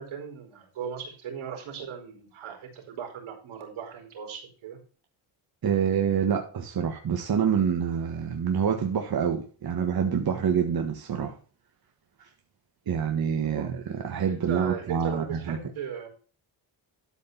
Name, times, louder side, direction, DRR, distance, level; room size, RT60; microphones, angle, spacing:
voice 1, 0.0-4.8 13.5-13.7 14.3-16.1, right 7 dB, 80° right, 4.8 m, -38 dB
voice 2, 5.6-11.3 12.2-12.3 12.9-15.6, right 7 dB, 50° right, 1.7 m, -26 dB
12.5 x 5.2 x 5.5 m
cardioid pair, 105°, 48 cm